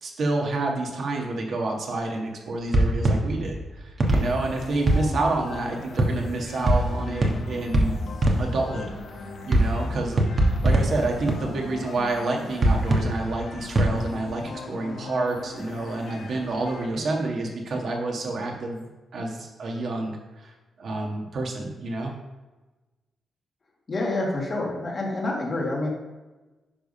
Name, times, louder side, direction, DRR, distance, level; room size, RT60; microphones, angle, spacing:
voice 1, 0.0-8.0 8.4-8.9 9.4-20.5 20.8-22.1, right 2 dB, 50° right, 1 dB, 1.4 m, -29 dB
sound 1, 2.7-5.6 6.0-8.9 9.5-11.8 12.5-14.3, right 1 dB, 30° right, 1.1 m, -23 dB
sound 2, 4.1-17.6, left 4 dB, 55° left, 0.9 m, -40 dB
voice 2, 23.9-25.9, left 2 dB, 30° left, -2 dB, 1.7 m, -27 dB
10.5 x 3.5 x 5.4 m, 1.2 s
wide cardioid pair, 160°, 0 cm